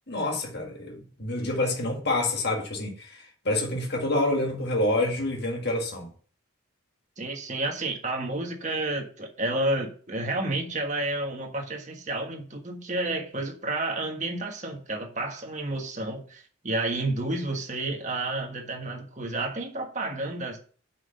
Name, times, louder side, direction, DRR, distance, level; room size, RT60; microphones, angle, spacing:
voice 1, 0.1-3.2 3.5-6.1, left 1 dB, 50° left, 1.8 m, -27 dB
voice 2, 7.2-20.6, right 2 dB, 35° right, 1.5 m, -30 dB
6.2 x 5.8 x 6.5 m
head